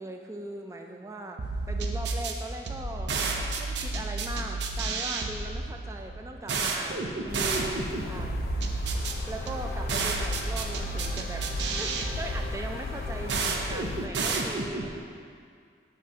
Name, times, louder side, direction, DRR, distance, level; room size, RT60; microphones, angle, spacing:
voice 1, 0.0-1.4 1.7-3.1 3.6-8.4 9.3-11.5 11.8-15.0, right 2 dB, 15° right, 3 dB, 0.3 m, -39 dB
sound 1, 1.4-15.0, right 3 dB, 80° right, 0.5 m, -31 dB
sound 2, 7.3-14.1, left 3 dB, 55° left, 0.4 m, -37 dB
Race car auto racing / Accelerating revving vroom, 8.4-13.9, left 1 dB, 15° left, 0.7 m, -46 dB
7.5 x 5.9 x 2.7 m, 2.2 s
head